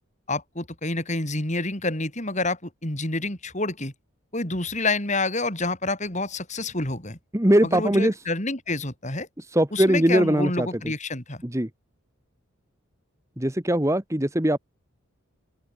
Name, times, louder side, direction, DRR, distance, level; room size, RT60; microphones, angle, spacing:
voice 1, 0.3-3.9 4.3-7.2 7.6-9.3 9.7-11.4, left 2 dB, 35° left, 5.1 m, -28 dB
voice 2, 7.3-8.1 9.5-10.7 11.5-11.7 13.4-14.6, right 1 dB, 15° right, 1.4 m, -21 dB
open air
head